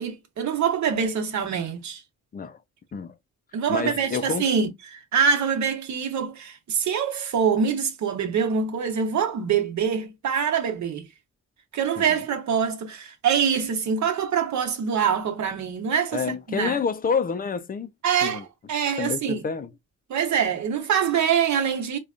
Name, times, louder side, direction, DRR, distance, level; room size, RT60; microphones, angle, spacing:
voice 1, 0.0-2.0 3.5-11.1 11.7-16.2 16.5-16.8 18.0-19.4 20.1-22.0, right 7 dB, 70° right, 1.1 m, -24 dB
voice 2, 3.7-4.4 12.0-12.2 16.1-17.9 18.2-18.4 19.0-19.7, left 5 dB, 30° left, 0.4 m, -28 dB
4.9 x 2.3 x 2.4 m
wide cardioid pair, 145°, 30 cm